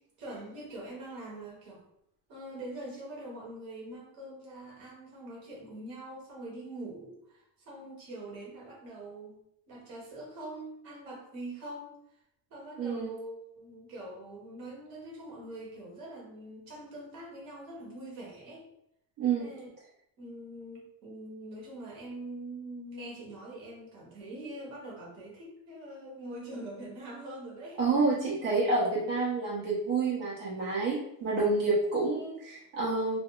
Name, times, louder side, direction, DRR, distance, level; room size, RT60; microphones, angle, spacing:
voice 1, 0.2-1.8 2.3-12.2 12.5-18.7 19.4-19.7 20.2-27.9, right 1 dB, 60° right, -4 dB, 1.4 m, -44 dB
voice 2, 12.8-13.1 19.2-19.5 27.8-33.2, right 3 dB, 85° right, -7 dB, 1.4 m, -28 dB
2.7 x 2.2 x 3.8 m, 0.78 s
cardioid pair, 150°, 41 cm